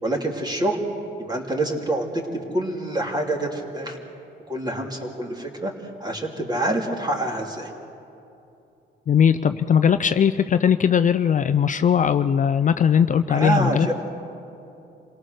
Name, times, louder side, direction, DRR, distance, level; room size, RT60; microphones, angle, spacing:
voice 1, 0.0-0.8 1.2-2.2 2.5-4.0 4.5-5.7 6.0-7.7 13.3-13.9, right 1 dB, 20° right, 1 dB, 3.0 m, -26 dB
voice 2, 9.1-13.9, left 8 dB, 40° left, 11 dB, 0.5 m, -19 dB
27.0 x 18.0 x 6.5 m, 2.8 s
cardioid pair, 90°, 20 cm